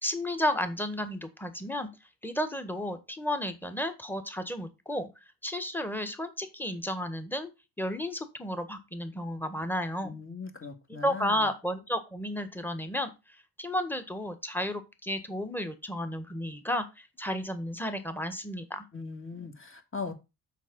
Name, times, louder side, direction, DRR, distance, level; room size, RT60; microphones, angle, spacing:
voice 1, 0.0-1.9 2.2-5.1 5.4-7.5 7.8-10.2 11.0-18.9, left 1 dB, 5° left, 1.5 m, -32 dB
voice 2, 10.0-11.5 18.9-20.1, left 4 dB, 25° left, 2.0 m, -39 dB
6.3 x 5.0 x 5.3 m
supercardioid pair, 55°, 47 cm